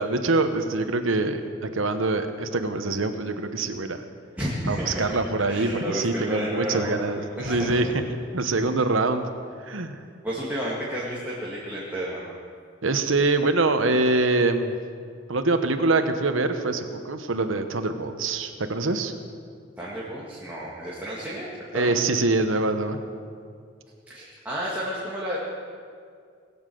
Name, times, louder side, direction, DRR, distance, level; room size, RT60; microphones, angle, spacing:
voice 1, 0.0-4.0 4.7-7.9 8.3-9.2 9.7-10.0 12.8-14.7 15.3-19.1 21.7-23.0, right 2 dB, 85° right, 8 dB, 1.0 m, -24 dB
voice 2, 4.4-5.2 5.5-7.9 10.2-12.3 19.8-22.0 24.1-25.4, equal, 10° right, -7 dB, 1.9 m, -31 dB
19.5 x 7.2 x 7.8 m, 2.2 s
head